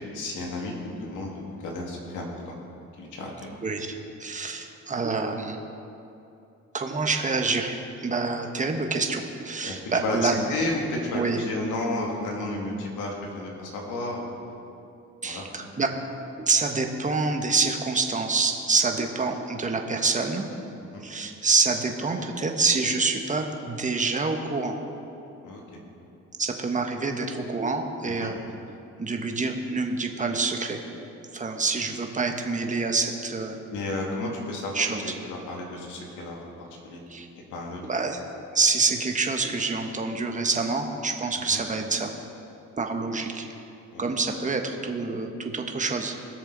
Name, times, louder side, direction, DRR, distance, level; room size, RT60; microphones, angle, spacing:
voice 1, 0.0-2.5 3.0-3.5 9.7-14.3 15.2-15.4 20.9-21.1 25.4-25.8 28.0-28.3 33.7-36.5 36.8-37.0 37.5-37.8 41.4-41.6 43.9-44.0, left 2 dB, 85° left, -1 dB, 2.3 m, -32 dB
voice 2, 4.2-5.6 6.7-10.3 11.1-11.4 15.2-15.9 16.4-20.4 21.0-24.8 26.4-28.3 29.0-30.8 31.3-33.6 34.2-34.3 34.7-35.0 37.1-37.3 37.8-38.2 38.5-42.1 42.8-43.5 44.0-46.2, right 4 dB, 25° right, 4 dB, 1.2 m, -26 dB
19.5 x 6.6 x 4.0 m, 2.8 s
cardioid pair, 90°, 30 cm